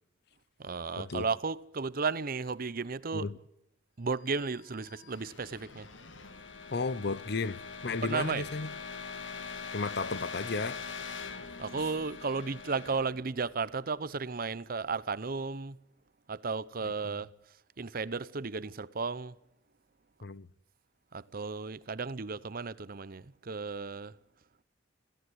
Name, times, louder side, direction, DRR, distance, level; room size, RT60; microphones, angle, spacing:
voice 1, 0.6-3.3 4.0-5.9 8.0-8.5 11.6-15.8 16.3-17.3 17.8-19.3 21.1-24.1, right 4 dB, 50° right, 0.8 m, -34 dB
sound 1, 4.4-14.2, left 5 dB, 85° left, 2.0 m, -43 dB
voice 2, 6.7-8.7 9.7-10.8 17.0-17.1 20.2-20.5, left 3 dB, 60° left, 0.9 m, -34 dB
22.0 x 17.0 x 8.0 m
head